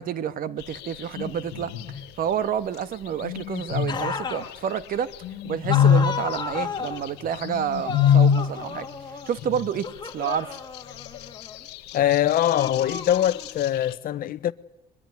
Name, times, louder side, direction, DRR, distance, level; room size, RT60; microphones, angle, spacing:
voice 1, 0.0-1.7 2.2-5.1 5.4-8.9 9.3-10.6, right 8 dB, 60° right, 1.4 m, -29 dB
sound 1, 0.6-2.1 3.1-4.8 5.1-8.6 8.9-9.0 9.6-13.9, left 8 dB, 90° left, 1.4 m, -25 dB
sound 2, 3.9-4.5 5.7-7.1 7.9-9.4 9.8-11.6 12.5-13.6, left 5 dB, 25° left, 2.8 m, -33 dB
voice 2, 11.9-14.5, left 11 dB, 60° left, 0.9 m, -22 dB
23.0 x 21.5 x 9.6 m
cardioid pair, 110°, 17 cm